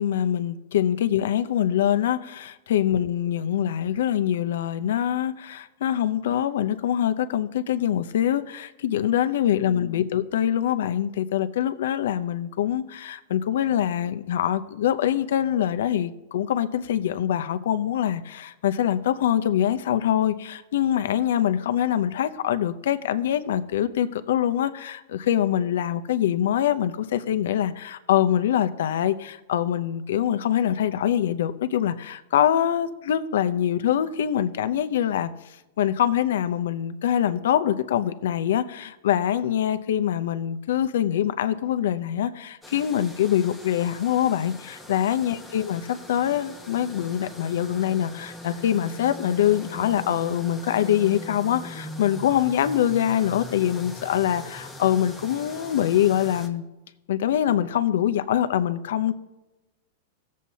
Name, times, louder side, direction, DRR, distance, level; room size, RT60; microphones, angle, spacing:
voice 1, 0.0-35.3 35.8-56.6 57.1-59.1, left 10 dB, 80° left, 10 dB, 0.6 m, -24 dB
sound 1, 42.6-56.5, left 1 dB, ahead, 0.9 m, -41 dB
17.0 x 7.4 x 2.8 m, 0.99 s
supercardioid pair, 155°, 0 cm